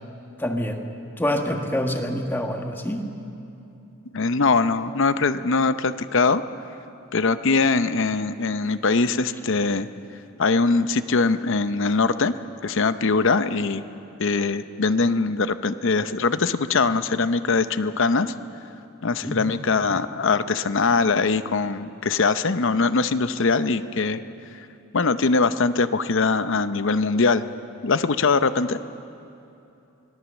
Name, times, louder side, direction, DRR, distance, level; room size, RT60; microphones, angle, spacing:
voice 1, 0.4-0.8 1.2-3.0 19.2-19.3, equal, 10° left, 3 dB, 1.5 m, -26 dB
voice 2, 4.1-6.4 7.1-9.9 10.4-12.4 12.6-13.8 14.2-18.3 19.0-24.2 24.9-27.4 27.8-28.8, left 4 dB, 60° left, 12 dB, 0.7 m, -22 dB
25.5 x 18.0 x 7.2 m, 2.8 s
head